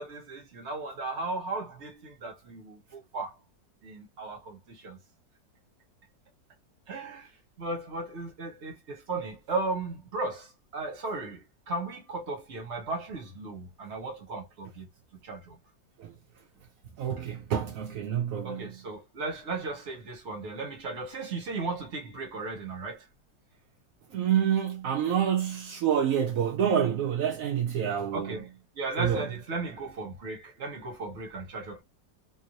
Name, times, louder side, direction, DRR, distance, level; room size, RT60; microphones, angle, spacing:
voice 1, 0.0-3.3 3.8-5.0 6.9-7.3 7.6-14.9 15.2-15.6 18.4-23.0 28.1-28.5 28.8-31.8, right 3 dB, 45° right, 1.2 m, -36 dB
voice 2, 17.0-18.8 24.1-28.4 29.0-29.3, right 9 dB, 70° right, 0.8 m, -27 dB
3.0 x 2.6 x 2.9 m
omnidirectional pair, 2.0 m